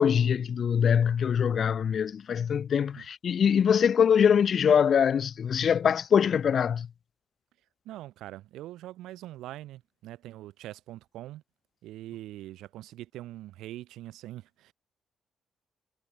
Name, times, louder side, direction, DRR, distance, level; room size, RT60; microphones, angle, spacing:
voice 1, 0.0-6.9, left 7 dB, 55° left, 0.8 m, -23 dB
voice 2, 7.8-11.4 11.8-14.7, right 15 dB, 90° right, 7.7 m, -43 dB
cardioid pair, 90°, 0 cm